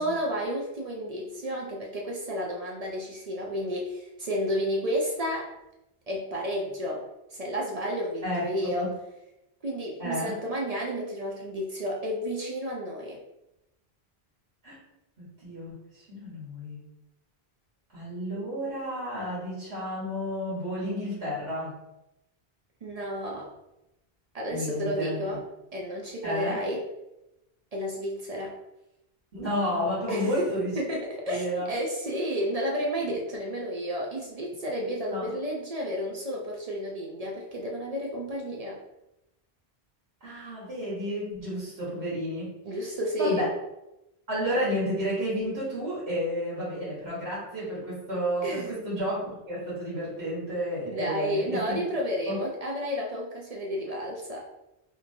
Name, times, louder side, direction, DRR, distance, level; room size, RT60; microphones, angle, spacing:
voice 1, 0.0-5.5 6.1-8.9 9.6-13.2 22.8-23.5 24.3-25.4 25.7-26.8 27.7-28.6 30.1-30.5 30.8-38.8 42.6-43.5 48.4-48.7 50.9-54.5, equal, 55° right, -1 dB, 0.4 m, -31 dB
voice 2, 8.2-9.0 10.0-10.4 14.6-14.8 15.2-16.8 17.9-21.8 24.5-25.4 26.2-26.6 29.3-30.7 31.2-31.7 35.1-35.3 40.2-42.5 43.2-43.5 44.3-51.8 52.3-52.4, equal, 75° right, -8 dB, 1.5 m, -31 dB
2.9 x 2.7 x 2.6 m, 0.92 s
omnidirectional pair, 1.1 m